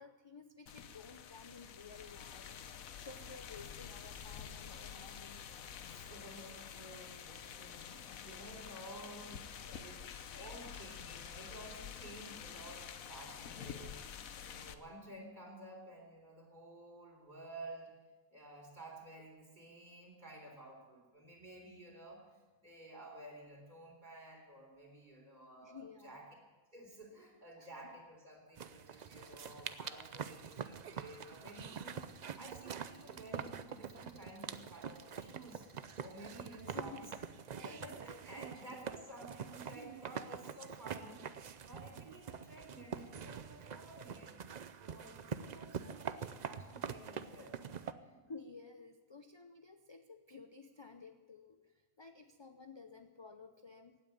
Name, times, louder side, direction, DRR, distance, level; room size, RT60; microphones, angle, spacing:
voice 1, 0.0-5.5 25.6-26.3 27.6-28.0 28.6-28.7 36.7-37.8 38.3-38.4 48.3-54.0, left 4 dB, 35° left, 7 dB, 0.4 m, -54 dB
sound 1, 0.7-14.7, left 8 dB, 75° left, 1.2 m, -48 dB
voice 2, 5.9-17.9 18.3-26.3 26.7-35.7 36.0-37.1 37.6-41.2 41.6-44.3 44.8-48.2, right 1 dB, 30° right, 0 dB, 3.8 m, -53 dB
sound 2, 28.6-47.9, right 7 dB, 60° right, 0.4 m, -45 dB
sound 3, 28.9-36.7, right 4 dB, 85° right, 2.2 m, -64 dB
16.0 x 8.9 x 9.2 m, 1.2 s
omnidirectional pair, 1.5 m